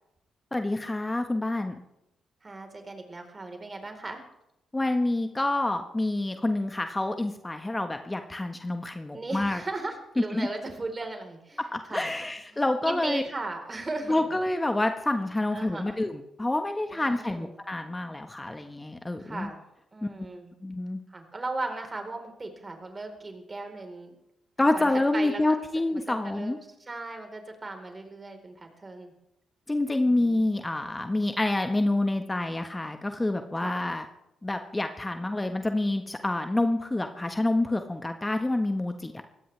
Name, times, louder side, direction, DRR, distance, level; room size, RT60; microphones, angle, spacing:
voice 1, 0.5-1.8 4.7-9.6 10.3-10.5 11.7-13.2 14.1-19.5 20.0-20.1 20.6-21.0 24.6-26.6 29.7-34.0 34.4-39.1, left 2 dB, 20° left, 6 dB, 1.4 m, -27 dB
voice 2, 2.4-4.2 9.1-12.1 12.5-14.2 15.5-16.0 16.9-17.5 19.2-19.6 19.9-20.5 21.1-24.1 24.7-25.4 25.9-26.6 26.9-29.1 30.0-30.4 33.6-33.8, right 2 dB, 35° right, 4 dB, 4.2 m, -37 dB
22.5 x 17.5 x 3.4 m, 0.87 s
hypercardioid pair, 40°, 0 cm